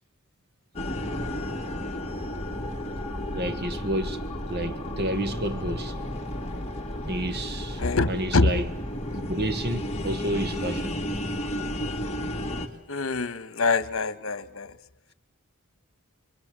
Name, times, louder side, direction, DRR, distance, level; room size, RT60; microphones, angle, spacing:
sound 1, 0.8-12.7, left 1 dB, 30° left, 2.5 m, -32 dB
voice 1, 3.3-4.2 4.5-5.9 7.0-7.8 8.1-8.7 9.1-11.0, right 1 dB, 50° right, 1.4 m, -30 dB
voice 2, 7.8-8.5 12.9-14.7, left 3 dB, 70° left, 1.4 m, -25 dB
29.5 x 22.5 x 7.6 m
head